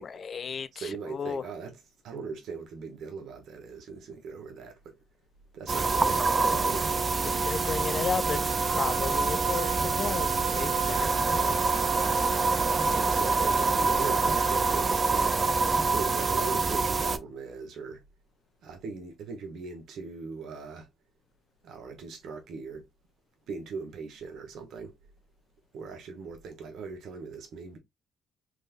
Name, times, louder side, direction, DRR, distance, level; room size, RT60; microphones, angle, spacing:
voice 1, 0.0-1.5 7.4-12.2, left 6 dB, 45° left, 0.3 m, -35 dB
voice 2, 0.7-1.7 2.0-5.0 5.5-7.0 7.8-7.9 10.4-11.1 12.8-15.4 15.8-18.0 18.6-20.9 21.6-22.9 23.5-24.9 25.7-27.8, right 5 dB, 70° right, 1.1 m, -40 dB
sound 1, 5.7-17.2, right 4 dB, 30° right, 0.4 m, -26 dB
3.6 x 3.1 x 2.5 m
cardioid pair, 100°, 0 cm